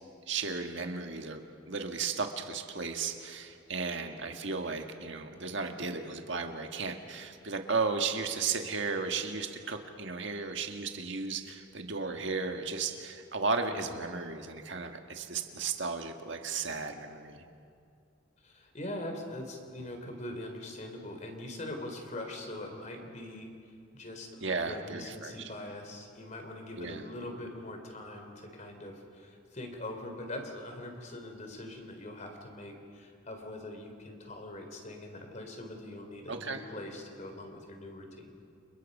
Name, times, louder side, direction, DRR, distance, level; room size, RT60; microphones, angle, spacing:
voice 1, 0.3-1.4 1.7-17.4 24.4-25.3 26.8-27.0 36.3-36.6, right 4 dB, 65° right, 4 dB, 1.7 m, -34 dB
voice 2, 18.4-38.3, left 1 dB, 35° left, 4 dB, 3.8 m, -42 dB
29.5 x 29.5 x 5.5 m, 2.4 s
head